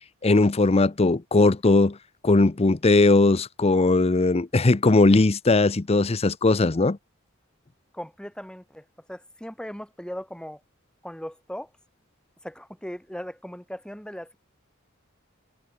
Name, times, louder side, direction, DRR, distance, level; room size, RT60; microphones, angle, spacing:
voice 1, 0.2-2.0 2.2-7.0, left 2 dB, 30° left, 0.6 m, -19 dB
voice 2, 7.9-10.6 11.0-11.7 12.4-14.4, equal, 5° left, 4.5 m, -38 dB
head